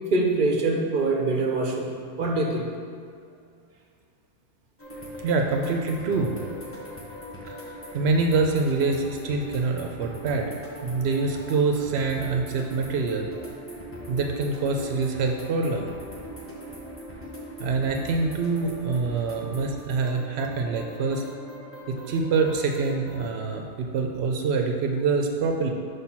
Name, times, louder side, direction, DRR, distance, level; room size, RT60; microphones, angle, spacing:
voice 1, 0.1-2.7, right 2 dB, 55° right, 1 dB, 0.8 m, -24 dB
sound 1, 4.8-23.4, equal, 15° left, 0.8 m, -40 dB
voice 2, 5.2-6.3 7.4-7.5 7.9-10.5 10.8-13.3 14.1-15.9 17.6-21.3 21.9-25.7, right 4 dB, 90° right, 3 dB, 0.8 m, -25 dB
6.0 x 3.3 x 5.7 m, 2.2 s
omnidirectional pair, 1.0 m